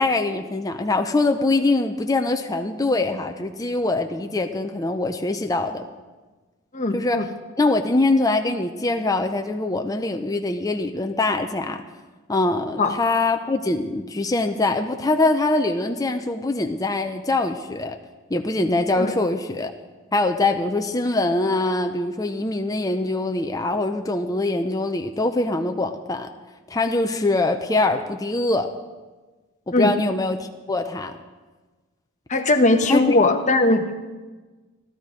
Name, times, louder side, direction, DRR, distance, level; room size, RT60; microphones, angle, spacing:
voice 1, 0.0-5.8 6.9-7.3 7.6-11.8 12.3-18.0 18.3-19.7 20.1-26.3 26.7-28.7 29.7-31.1 32.9-33.2, left 2 dB, 15° left, 5 dB, 0.6 m, -23 dB
voice 2, 6.7-7.3 12.8-13.0 19.0-19.1 29.7-30.0 32.3-34.0, left 2 dB, 35° left, 6 dB, 1.0 m, -19 dB
16.0 x 12.5 x 5.1 m, 1.3 s
head